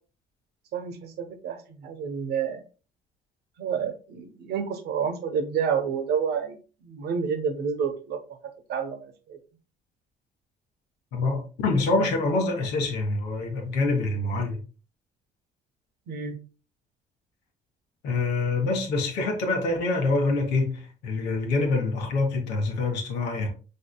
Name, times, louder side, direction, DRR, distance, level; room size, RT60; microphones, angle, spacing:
voice 1, 0.7-2.6 3.6-8.2 8.7-9.4 16.1-16.4, right 7 dB, 70° right, 1.0 m, -29 dB
voice 2, 11.1-14.6 18.0-23.5, left 3 dB, 85° left, 1.5 m, -26 dB
5.6 x 3.6 x 2.3 m
cardioid pair, 110°, 17 cm